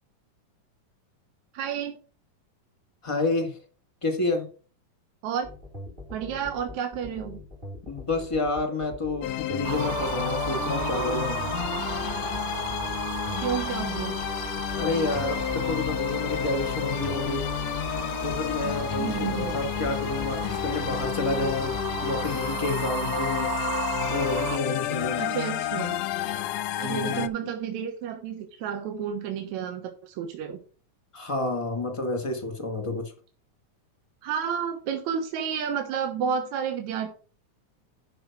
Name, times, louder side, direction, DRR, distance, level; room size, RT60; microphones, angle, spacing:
voice 1, 1.5-2.0 5.2-5.5 6.1-7.4 13.4-14.1 19.0-19.6 25.2-26.0 26.8-30.6 34.2-37.1, right 7 dB, 70° right, 2.4 m, -31 dB
voice 2, 3.0-3.6 4.0-4.5 7.9-11.4 14.7-17.6 18.2-23.5 24.1-25.2 26.8-27.3 31.1-33.1, left 2 dB, 15° left, 1.3 m, -29 dB
sound 1, 5.4-21.8, left 2 dB, 20° right, 2.1 m, -41 dB
sound 2, 9.2-27.3, left 12 dB, 75° left, 1.7 m, -31 dB
sound 3, 9.6-24.6, right 12 dB, 90° right, 2.2 m, -35 dB
12.0 x 4.3 x 6.0 m
omnidirectional pair, 3.6 m